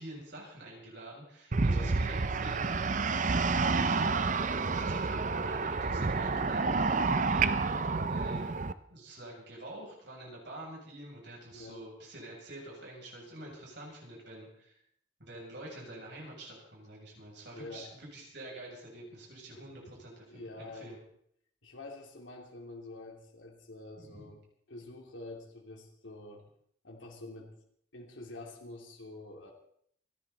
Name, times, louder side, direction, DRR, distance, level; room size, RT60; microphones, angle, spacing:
voice 1, 0.0-8.6 8.9-14.8 15.2-21.0 24.0-24.3, right 1 dB, 65° right, -3 dB, 7.8 m, -47 dB
sound 1, 1.5-8.7, right 4 dB, 40° right, 0.6 m, -29 dB
voice 2, 1.7-2.0 11.5-11.8 17.5-17.9 20.3-20.9 21.6-24.4 24.7-26.5 26.8-27.6 27.9-29.5, left 2 dB, 85° left, 1 dB, 2.9 m, -47 dB
28.5 x 11.0 x 4.2 m, 0.66 s
head